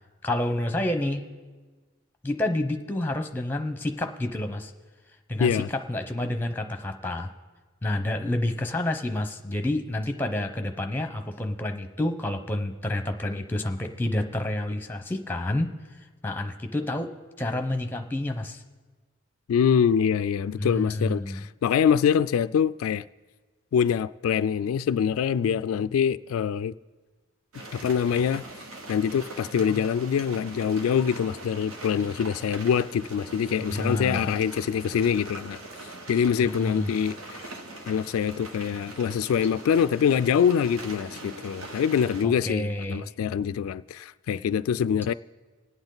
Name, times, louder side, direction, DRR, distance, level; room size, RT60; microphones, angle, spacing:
voice 1, 0.2-1.3 2.2-4.7 5.3-5.6 5.9-7.3 7.8-15.7 16.2-17.1 17.4-18.6 20.6-21.4 33.6-34.3 36.4-37.0 42.2-43.1, left 1 dB, 10° left, 0.8 m, -29 dB
voice 2, 19.5-23.0 23.7-26.7 27.7-28.4 28.9-35.6 36.1-37.4 37.9-45.1, left 7 dB, 85° left, 0.3 m, -24 dB
sound 1, 27.5-42.3, right 2 dB, 90° right, 1.3 m, -42 dB
24.0 x 8.9 x 4.0 m
head